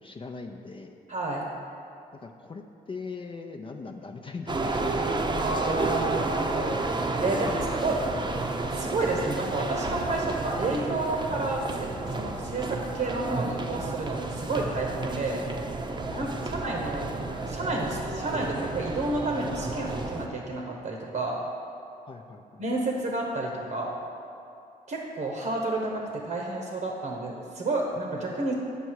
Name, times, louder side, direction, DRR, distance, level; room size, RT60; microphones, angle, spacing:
voice 1, 0.0-0.9 2.2-5.3 7.2-8.3 16.1-16.3 22.1-22.6, left 4 dB, 35° left, 4 dB, 0.5 m, -40 dB
voice 2, 1.1-1.4 5.4-6.7 7.2-7.5 7.8-8.0 8.7-15.5 16.2-17.1 17.5-21.4 22.6-24.0 24.9-28.5, right 2 dB, 60° right, 0 dB, 1.1 m, -30 dB
sound 1, 4.5-20.3, right 2 dB, 30° right, 0.8 m, -31 dB
9.0 x 5.5 x 4.7 m, 2.5 s
cardioid pair, 70°, 16 cm